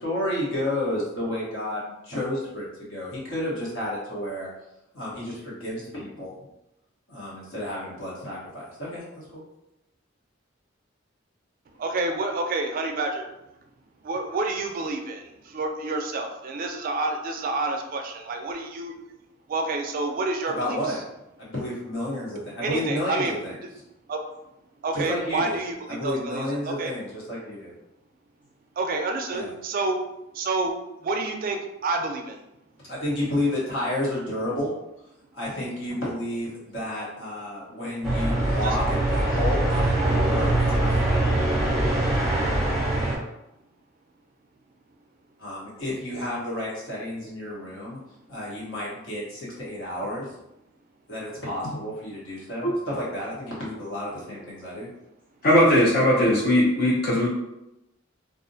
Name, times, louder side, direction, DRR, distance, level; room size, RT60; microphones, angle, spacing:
voice 1, 0.0-4.5 4.9-6.3 7.1-9.4 20.5-21.0 21.4-23.5 24.9-25.6 25.9-27.7 29.3-29.5 32.8-34.7 35.3-41.2 45.4-48.0 48.3-50.3 51.1-54.9, left 1 dB, 75° left, -6 dB, 1.0 m, -31 dB
voice 2, 11.8-13.3 14.0-19.0 19.5-21.0 22.6-23.3 24.1-24.2 24.8-26.9 28.8-30.0 30.3-30.7 31.0-32.4 38.6-38.7, right 3 dB, 45° right, 4 dB, 0.3 m, -28 dB
sound 1, 38.0-43.2, right 1 dB, ahead, 0.7 m, -23 dB
voice 3, 55.4-57.3, equal, 50° left, -5 dB, 0.4 m, -19 dB
2.4 x 2.0 x 2.6 m, 0.88 s
head